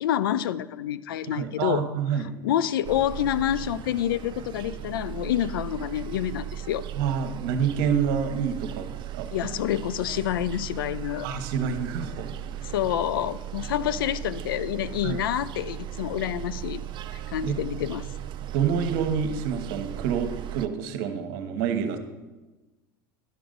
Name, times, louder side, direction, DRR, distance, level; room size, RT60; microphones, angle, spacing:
voice 1, 0.0-1.8 2.4-6.8 9.3-11.3 12.6-16.8 17.1-18.1, left 11 dB, 80° left, 16 dB, 0.4 m, -28 dB
voice 2, 1.3-2.3 6.9-8.9 9.1-9.5 11.2-12.7 15.0-15.2 17.4-17.6 18.5-22.0, right 7 dB, 65° right, 7 dB, 1.0 m, -28 dB
sound 1, 2.8-20.7, right 11 dB, 45° right, 0.5 m, -37 dB
11.0 x 6.0 x 3.9 m, 1.2 s
hypercardioid pair, 90°, 12 cm